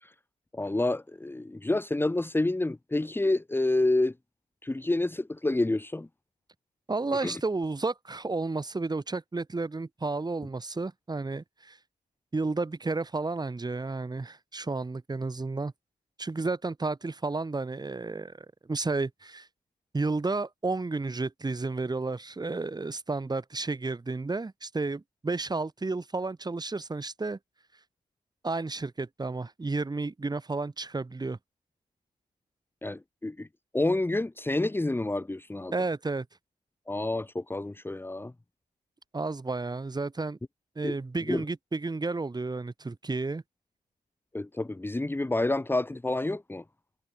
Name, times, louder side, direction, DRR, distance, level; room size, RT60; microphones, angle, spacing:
voice 1, 0.5-4.1 4.6-6.1 7.2-7.3 32.8-33.5 33.7-35.7 36.9-38.3 40.8-41.0 41.3-41.4 44.3-46.6, left 2 dB, 15° left, 1.9 m, -28 dB
voice 2, 6.9-11.8 12.3-15.7 16.2-19.5 19.9-27.4 28.4-31.4 35.7-36.3 39.1-40.4 40.8-43.4, right 3 dB, 25° right, 7.4 m, -32 dB
cardioid pair, 90°, 17 cm